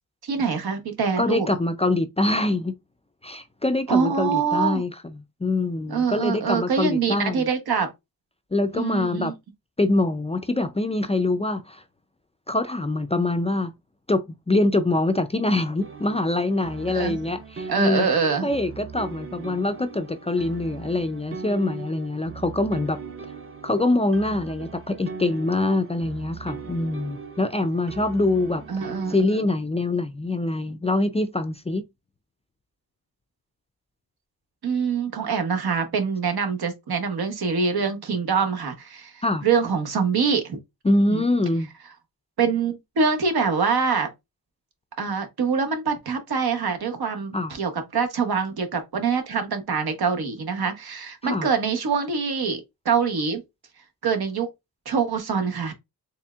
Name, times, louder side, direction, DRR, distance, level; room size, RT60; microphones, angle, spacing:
voice 1, 0.2-1.5 3.9-4.8 5.9-7.9 8.7-9.3 16.9-17.2 17.7-18.5 28.7-29.4 34.6-40.6 41.1-41.2 42.4-44.1 45.0-53.4 54.0-54.5 54.9-55.7, right 5 dB, 75° right, 1.1 m, -24 dB
voice 2, 1.2-2.7 3.2-4.9 5.4-7.5 8.5-9.3 9.8-11.8 12.5-13.7 14.1-18.1 18.4-23.0 23.6-28.6 29.1-31.8 39.2-39.4 40.8-41.7 47.3-47.5 51.2-51.5, left 2 dB, 20° left, 0.3 m, -24 dB
sound 1, 15.8-29.2, right 5 dB, 35° right, 0.5 m, -39 dB
4.3 x 3.4 x 2.3 m
wide cardioid pair, 100°, 38 cm